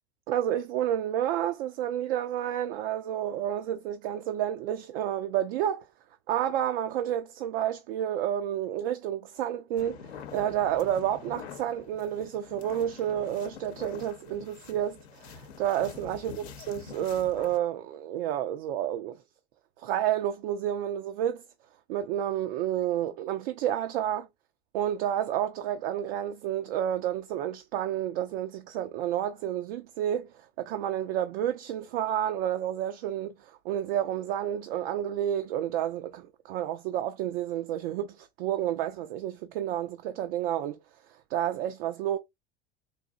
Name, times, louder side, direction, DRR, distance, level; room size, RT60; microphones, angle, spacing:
voice 1, 0.3-5.9 6.3-16.3 16.7-19.2 19.8-21.4 21.9-24.3 24.7-40.8 41.3-42.2, right 11 dB, 60° right, 0.5 m, -30 dB
sound 1, 9.8-17.6, left 6 dB, 75° left, 0.8 m, -45 dB
4.1 x 2.6 x 2.3 m
hypercardioid pair, 80°, 33 cm